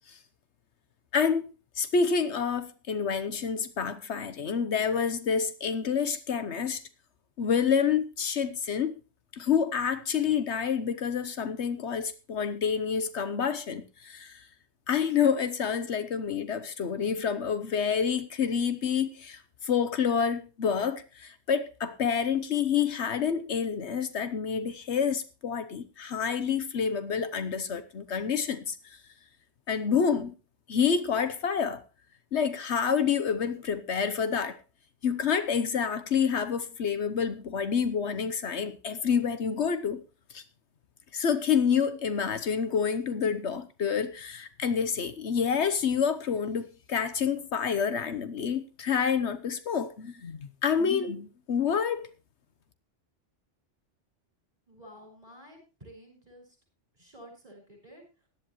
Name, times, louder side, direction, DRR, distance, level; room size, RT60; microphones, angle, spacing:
voice 1, 1.1-6.8 7.4-9.0 9.3-14.4 14.9-29.0 29.7-30.3 30.7-31.8 32.3-34.6 35.0-40.0 40.3-40.4 41.1-52.1, left 7 dB, 70° left, 1.2 m, -28 dB
voice 2, 54.7-56.6 56.9-58.3, equal, 35° right, 6.4 m, -51 dB
17.5 x 11.0 x 3.1 m
omnidirectional pair, 1.2 m